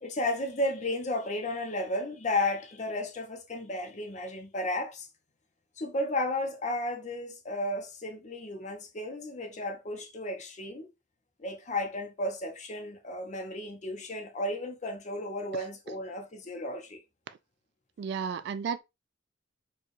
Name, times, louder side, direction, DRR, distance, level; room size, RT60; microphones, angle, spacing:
voice 1, 0.0-5.1 5.8-10.9 11.4-17.0, left 1 dB, 40° left, 0.8 m, -33 dB
voice 2, 18.0-18.8, right 6 dB, 60° right, 0.3 m, -32 dB
4.4 x 2.4 x 3.1 m
head